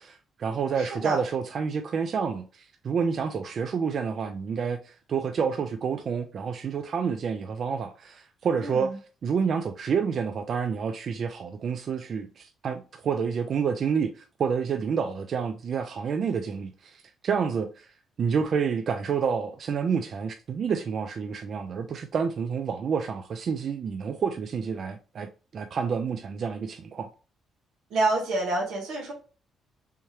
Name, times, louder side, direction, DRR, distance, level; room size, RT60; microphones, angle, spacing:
voice 1, 0.0-8.9 9.2-17.9 18.2-27.1, right 6 dB, 55° right, 0.3 m, -29 dB
voice 2, 0.7-1.2 8.6-8.9 27.9-29.1, right 2 dB, 80° right, 1.4 m, -28 dB
3.5 x 2.8 x 3.1 m
cardioid pair, 90°, 0 cm